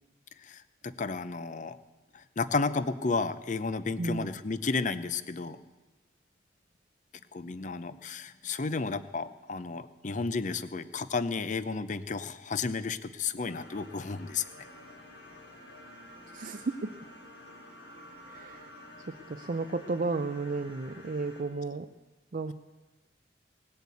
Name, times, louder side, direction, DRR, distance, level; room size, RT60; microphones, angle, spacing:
voice 1, 0.4-1.8 2.1-5.6 7.3-14.4, left 4 dB, 40° left, 13 dB, 0.6 m, -32 dB
voice 2, 4.0-4.3 16.3-17.0 18.3-18.7 19.1-21.9 22.3-22.5, right 3 dB, 45° right, 7 dB, 0.5 m, -33 dB
sound 1, 13.5-21.4, left 1 dB, 85° left, 4.1 m, -50 dB
19.0 x 8.0 x 8.4 m, 1.2 s
head